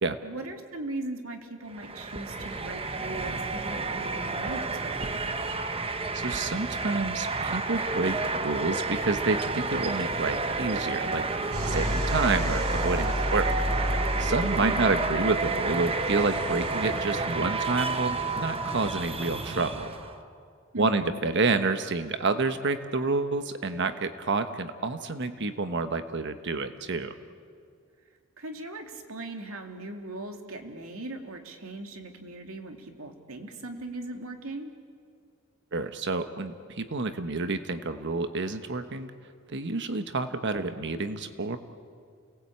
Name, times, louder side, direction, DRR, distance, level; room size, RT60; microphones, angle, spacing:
voice 1, 0.2-5.0 14.6-15.0 20.7-21.1 28.4-34.7, right 2 dB, 75° right, 4 dB, 2.8 m, -39 dB
sound 1, 1.7-20.1, right 3 dB, 25° right, 1.1 m, -30 dB
voice 2, 6.1-13.5 14.2-19.8 20.8-27.1 35.7-39.1 39.5-41.6, right 3 dB, 55° right, 9 dB, 1.2 m, -29 dB
sound 2, 11.5-20.1, equal, 90° right, 5.1 m, -33 dB
29.0 x 19.5 x 8.7 m, 2.2 s
head